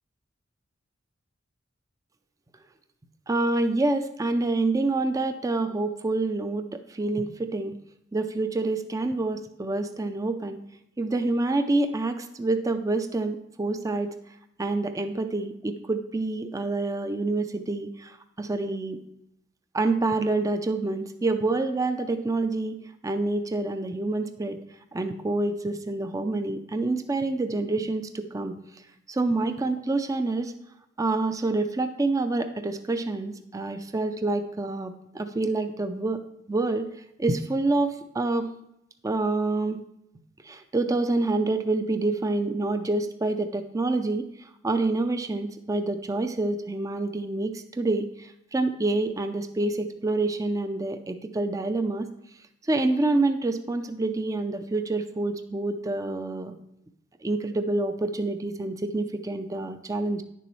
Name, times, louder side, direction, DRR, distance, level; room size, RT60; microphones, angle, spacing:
voice 1, 3.3-7.7 8.1-10.6 11.0-14.2 14.6-19.0 19.7-22.8 23.0-24.6 24.9-28.6 29.1-30.5 31.0-36.2 36.5-36.9 37.2-38.5 39.0-39.8 40.4-52.1 52.7-56.5 57.2-60.2, right 2 dB, 15° right, 9 dB, 0.4 m, -27 dB
10.0 x 6.9 x 3.1 m, 0.78 s
head